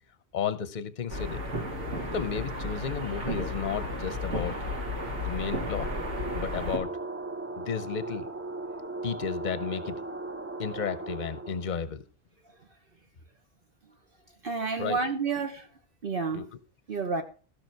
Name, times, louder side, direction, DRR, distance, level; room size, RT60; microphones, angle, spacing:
voice 1, 0.3-1.4 2.1-4.6 5.2-5.9 6.3-6.9 7.6-8.3 9.0-10.0 10.6-12.0 14.8-15.0 16.3-16.4, left 7 dB, 45° left, 0.8 m, -33 dB
sound 1, 1.1-6.8, left 1 dB, 85° right, 2.5 m, -33 dB
sound 2, 3.5-11.8, right 2 dB, 15° right, 0.7 m, -38 dB
voice 2, 14.4-15.7 16.0-16.4 16.9-17.2, right 4 dB, 50° right, 1.1 m, -29 dB
15.5 x 6.0 x 4.5 m
omnidirectional pair, 1.2 m